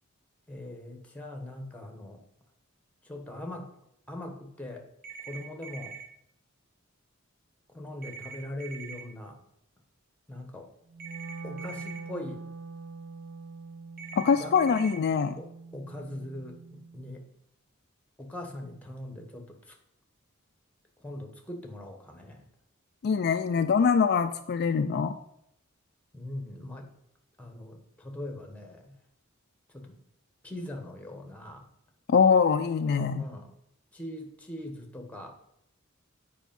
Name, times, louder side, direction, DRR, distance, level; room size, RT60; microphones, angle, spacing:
voice 1, 0.5-2.2 3.0-3.7 4.1-4.8 5.2-5.9 7.7-9.4 10.3-10.7 11.4-12.4 14.4-14.5 15.4-17.3 18.2-19.8 21.0-22.4 26.1-26.9 27.4-29.0 29.7-30.0 30.4-31.7 32.8-33.5 33.9-35.4, left 1 dB, 5° left, 3 dB, 1.2 m, -41 dB
sound 1, 5.0-6.0 8.0-9.0 11.0-12.0 14.0-15.0, right 6 dB, 45° right, 1.1 m, -43 dB
Wind instrument woodwind instrument, 10.9-17.1, right 4 dB, 75° right, 1.0 m, -44 dB
voice 2, 14.1-15.4 23.0-25.2 32.1-33.2, left 6 dB, 50° left, 9 dB, 0.3 m, -23 dB
8.2 x 4.9 x 5.3 m, 0.76 s
head